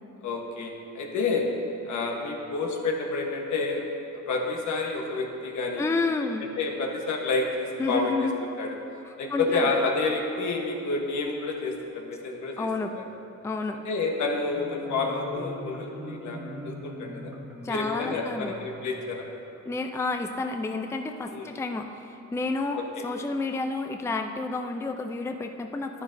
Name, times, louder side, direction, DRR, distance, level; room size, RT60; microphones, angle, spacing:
voice 1, 0.2-1.5 1.8-3.8 4.1-5.9 6.6-8.3 8.6-8.7 9.2-12.7 13.0-13.1 13.8-16.4 16.6-17.3 17.7-19.3 21.3-21.5 22.8-23.0, left 3 dB, 75° left, 1 dB, 1.2 m, -29 dB
voice 2, 5.8-6.5 7.8-8.3 9.1-9.7 12.6-12.9 13.4-13.8 17.6-18.6 19.7-22.8 23.0-26.0, left 3 dB, 10° left, 5 dB, 0.4 m, -30 dB
Marimba xylophone, 14.2-19.7, equal, 10° right, 1.4 m, -41 dB
10.5 x 10.0 x 2.7 m, 2.8 s
cardioid pair, 90°, 30 cm